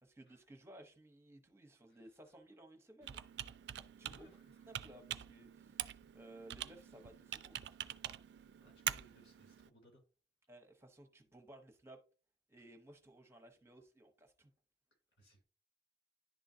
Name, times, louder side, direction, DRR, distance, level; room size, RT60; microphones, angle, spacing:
voice 1, 0.0-3.2 3.8-4.3 4.7-7.6 10.5-12.0 12.5-14.5, right 1 dB, 15° right, 0.8 m, -58 dB
Computer keyboard, 3.0-9.7, right 11 dB, 75° right, 0.4 m, -45 dB
voice 2, 4.0-4.4 8.6-10.0 15.2-15.4, left 1 dB, 90° left, 3.0 m, -65 dB
10.5 x 3.8 x 2.6 m
head